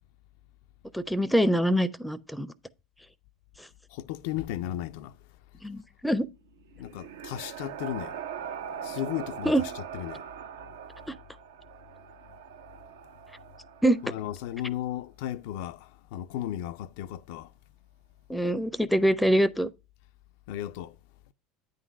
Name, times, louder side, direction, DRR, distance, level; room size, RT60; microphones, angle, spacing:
voice 1, 0.9-2.5 3.6-3.7 5.6-6.3 9.5-9.6 13.8-14.0 18.3-19.7, right 1 dB, 5° left, 0.5 m, -24 dB
voice 2, 3.9-5.2 6.8-8.2 8.8-10.2 14.0-17.5 20.5-21.0, left 12 dB, 60° left, 0.3 m, -35 dB
sound 1, 6.5-14.4, right 8 dB, 70° right, 0.6 m, -41 dB
9.3 x 3.9 x 5.2 m
figure-of-eight pair, 70°, 0 cm